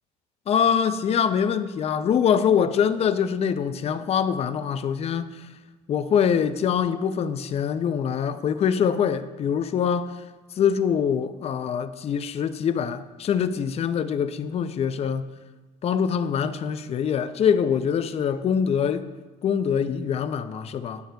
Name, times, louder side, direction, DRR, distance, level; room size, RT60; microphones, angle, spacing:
voice 1, 0.5-5.5 5.9-10.2 10.6-15.3 15.8-19.1 19.4-21.0, left 7 dB, 40° left, 0.4 m, -24 dB
10.5 x 6.5 x 2.2 m
cardioid pair, 110°, 17 cm